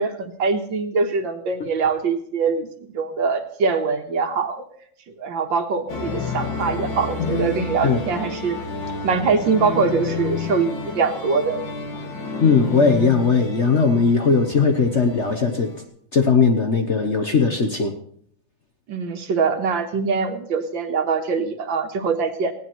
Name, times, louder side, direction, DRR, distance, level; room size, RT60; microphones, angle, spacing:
voice 1, 0.0-4.6 5.2-8.6 9.0-11.6 18.9-22.5, right 5 dB, 70° right, 6 dB, 1.9 m, -23 dB
sound 1, 5.9-15.8, left 4 dB, 70° left, 2.7 m, -30 dB
voice 2, 12.4-15.7 16.1-17.9, left 5 dB, 45° left, 5 dB, 1.0 m, -18 dB
19.0 x 17.0 x 3.1 m, 0.63 s
omnidirectional pair, 2.2 m